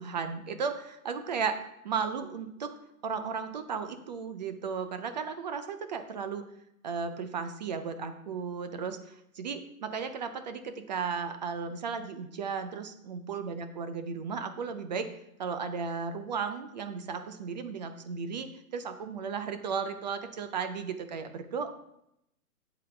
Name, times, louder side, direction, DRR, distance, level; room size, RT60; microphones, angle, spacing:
voice 1, 0.0-1.6 1.8-2.7 3.0-6.4 6.8-15.1 15.4-21.7, right 6 dB, 30° right, 10 dB, 0.5 m, -35 dB
8.2 x 7.7 x 3.3 m, 0.80 s
hypercardioid pair, 135°, 45 cm